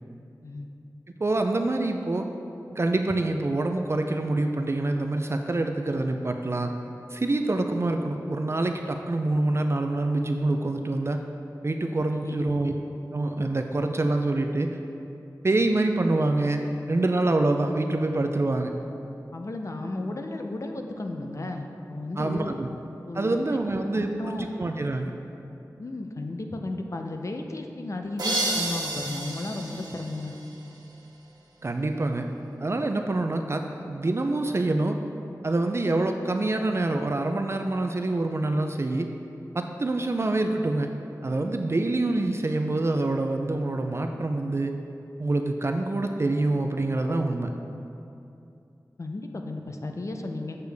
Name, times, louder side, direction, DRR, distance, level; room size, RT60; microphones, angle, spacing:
voice 1, 1.2-2.3 2.7-6.7 7.1-11.2 11.6-12.7 13.1-14.8 15.4-16.6 16.9-18.7 22.2-22.7 23.1-25.1 31.6-32.3 32.6-35.0 35.4-39.1 39.5-40.9 41.2-44.7 45.2-47.5, right 2 dB, 40° right, 5 dB, 0.4 m, -26 dB
voice 2, 12.1-12.4 19.3-22.5 23.1-23.4 23.9-24.5 25.8-30.3 49.0-50.6, left 2 dB, 50° left, 4 dB, 0.6 m, -34 dB
sound 1, 28.2-30.9, right 1 dB, 85° right, 1.3 m, -31 dB
8.0 x 6.7 x 3.4 m, 2.7 s
wide cardioid pair, 70°, 7 cm